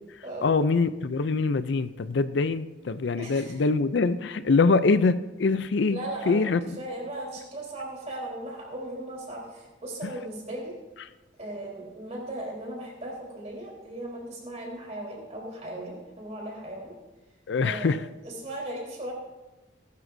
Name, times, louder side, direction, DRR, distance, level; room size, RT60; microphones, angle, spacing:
voice 1, 0.4-6.6 17.5-18.0, left 4 dB, 65° left, 13 dB, 0.5 m, -24 dB
voice 2, 3.1-3.6 5.9-10.8 11.4-16.9 17.6-18.0 18.2-19.1, right 1 dB, 35° right, -2 dB, 3.7 m, -37 dB
19.0 x 12.0 x 2.7 m, 1.1 s
head